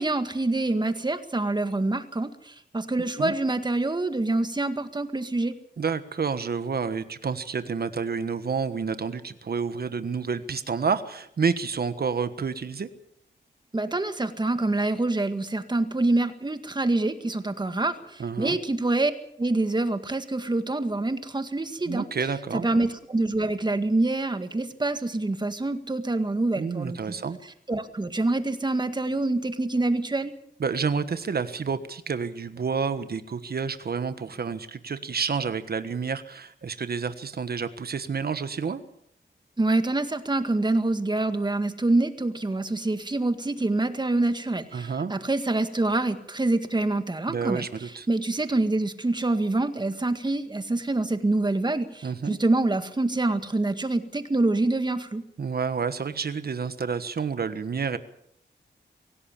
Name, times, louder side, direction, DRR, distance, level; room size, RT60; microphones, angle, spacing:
voice 1, 0.0-5.5 13.7-19.1 19.4-22.1 22.5-27.0 27.7-30.3 39.6-55.2, right 2 dB, 25° right, 9 dB, 1.9 m, -26 dB
voice 2, 5.8-12.9 18.2-18.6 21.9-22.7 26.6-27.4 30.6-38.8 44.7-45.1 47.3-48.1 52.0-52.4 55.4-58.0, right 5 dB, 60° right, 11 dB, 1.4 m, -29 dB
25.0 x 17.0 x 7.3 m, 0.72 s
wide cardioid pair, 110°, 19 cm